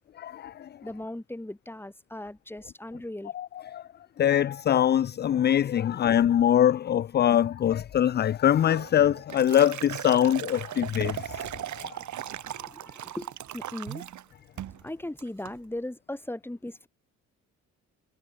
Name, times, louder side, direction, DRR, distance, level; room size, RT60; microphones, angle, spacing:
voice 1, 0.2-0.7 3.3-3.5 3.7-3.8 4.2-11.5 11.8-11.9, left 10 dB, 35° left, 0.4 m, -23 dB
voice 2, 0.8-3.3 12.4-14.1 14.8-16.9, left 1 dB, 5° left, 2.7 m, -38 dB
Liquid, 8.7-14.2 14.6-14.8 15.2-15.6, right 11 dB, 70° right, 4.9 m, -38 dB
cardioid pair, 90°, 30 cm